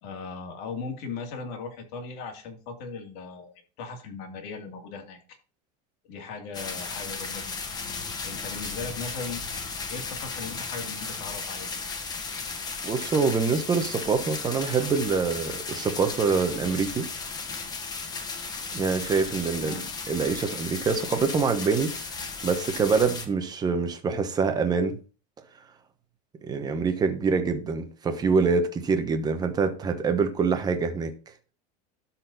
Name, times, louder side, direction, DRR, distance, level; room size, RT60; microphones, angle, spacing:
voice 1, 0.0-5.2 6.1-7.5 8.2-9.4 9.9-11.8 19.5-19.9, left 4 dB, 50° left, 2.6 m, -38 dB
sound 1, 6.5-23.3, left 4 dB, 20° left, 1.1 m, -35 dB
voice 2, 12.8-17.1 18.7-22.0 22.4-25.0 26.4-31.1, right 5 dB, 20° right, 1.1 m, -25 dB
12.5 x 4.3 x 4.2 m
supercardioid pair, 155°, 20 cm